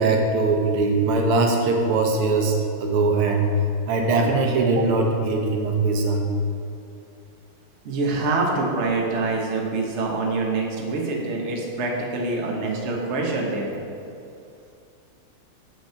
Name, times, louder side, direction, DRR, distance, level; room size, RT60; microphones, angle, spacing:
voice 1, 0.0-3.5 3.9-6.3, right 3 dB, 80° right, 2 dB, 1.8 m, -21 dB
voice 2, 7.8-13.7, right 3 dB, 40° right, -1 dB, 1.2 m, -25 dB
7.5 x 6.2 x 5.7 m, 2.6 s
omnidirectional pair, 2.4 m